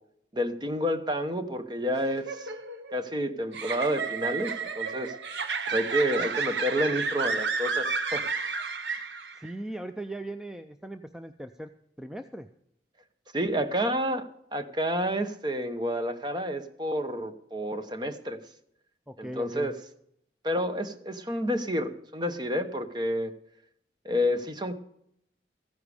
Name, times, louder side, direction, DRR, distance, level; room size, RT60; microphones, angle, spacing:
voice 1, 0.3-2.5 2.9-5.1 5.7-8.2 13.3-18.4 19.2-19.7 20.4-23.3 24.0-24.7, equal, 25° right, 8 dB, 0.9 m, -29 dB
sound 1, 1.9-9.5, right 5 dB, 80° right, 0.9 m, -32 dB
voice 2, 9.3-11.7 12.0-12.5 19.1-19.7, right 1 dB, 5° right, 8 dB, 0.4 m, -39 dB
14.5 x 10.5 x 4.9 m, 0.74 s
head